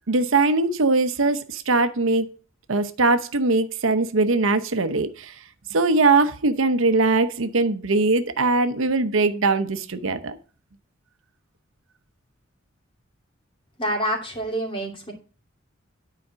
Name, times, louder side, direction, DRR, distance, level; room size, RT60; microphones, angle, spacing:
voice 1, 0.1-2.3 2.7-5.3 5.7-10.4, right 3 dB, 85° right, 0.9 m, -21 dB
voice 2, 13.8-15.1, right 1 dB, 25° left, 2.7 m, -27 dB
9.9 x 5.0 x 6.2 m
head